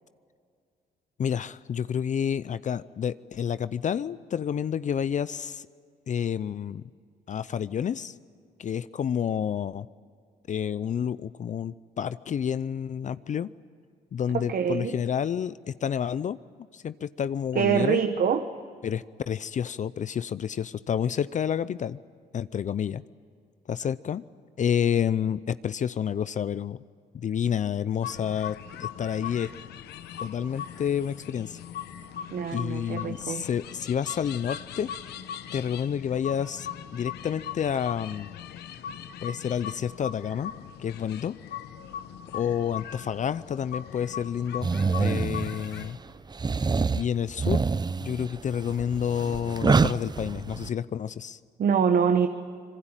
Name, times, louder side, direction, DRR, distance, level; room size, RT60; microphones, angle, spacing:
voice 1, 1.2-5.7 6.1-6.8 7.3-8.2 8.6-9.9 10.5-13.5 14.1-16.4 16.7-18.0 18.8-22.0 22.3-23.0 23.7-24.2 24.6-26.8 27.1-29.5 30.2-31.6 32.5-34.9 35.5-38.3 39.2-40.5 40.8-41.3 42.3-44.7 45.0-46.0 46.9-47.6 48.0-51.4, left 8 dB, 50° left, 16 dB, 0.6 m, -29 dB
voice 2, 14.3-15.0 17.5-18.4 32.3-33.4 51.6-52.3, right 7 dB, 60° right, 8 dB, 1.2 m, -24 dB
sound 1, 28.0-45.9, left 9 dB, 90° left, 1.1 m, -40 dB
sound 2, 44.6-45.9 46.3-50.7, right 4 dB, 25° right, 0.6 m, -26 dB
25.0 x 22.0 x 9.0 m, 2.2 s
cardioid pair, 80°, 16 cm